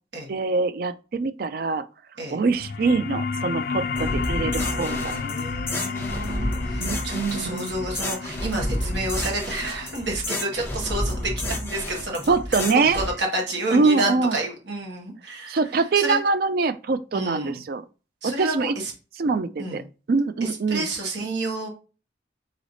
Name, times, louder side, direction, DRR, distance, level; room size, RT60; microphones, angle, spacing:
voice 1, 0.3-1.8 2.3-5.0 6.8-7.7 12.3-13.0 13.7-14.4 15.5-17.8 18.2-18.7 19.2-19.8 20.1-20.9, right 4 dB, 50° right, 0.4 m, -23 dB
sound 1, 2.5-13.6, left 5 dB, 50° left, 0.3 m, -33 dB
sound 2, 4.0-13.1, left 1 dB, 10° left, 1.0 m, -30 dB
voice 2, 4.6-12.6 12.9-16.2 17.1-17.6 18.2-18.9 19.6-19.8 20.4-21.7, right 2 dB, 75° right, 1.5 m, -30 dB
4.0 x 3.3 x 3.9 m
head